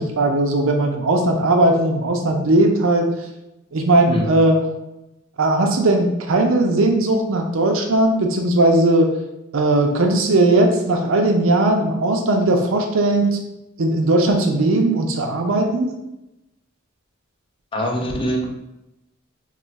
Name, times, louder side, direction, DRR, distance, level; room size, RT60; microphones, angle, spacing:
voice 1, 0.0-3.1 3.7-4.6 5.4-9.1 9.5-13.3 13.8-15.9, right 2 dB, 75° right, 3 dB, 0.5 m, -18 dB
voice 2, 17.7-18.5, equal, 25° left, 1 dB, 0.4 m, -23 dB
2.4 x 2.3 x 3.9 m, 0.93 s
head